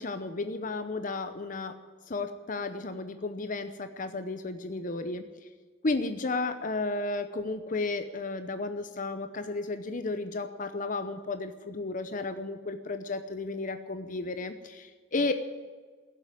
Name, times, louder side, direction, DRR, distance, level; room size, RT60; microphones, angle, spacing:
voice 1, 0.0-1.7 2.1-5.2 5.8-15.3, left 3 dB, 40° left, 9 dB, 0.8 m, -33 dB
16.0 x 7.7 x 9.9 m, 1.5 s
head